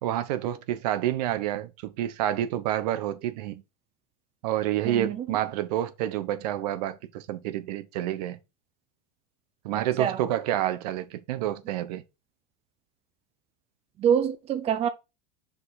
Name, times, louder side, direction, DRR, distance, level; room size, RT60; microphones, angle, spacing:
voice 1, 0.0-3.6 4.4-8.4 9.6-12.0, right 12 dB, 70° right, 1.1 m, -29 dB
voice 2, 4.8-5.3 9.7-10.2 14.0-14.9, right 8 dB, 30° right, 0.7 m, -26 dB
5.4 x 5.3 x 4.1 m
supercardioid pair, 130°, 21 cm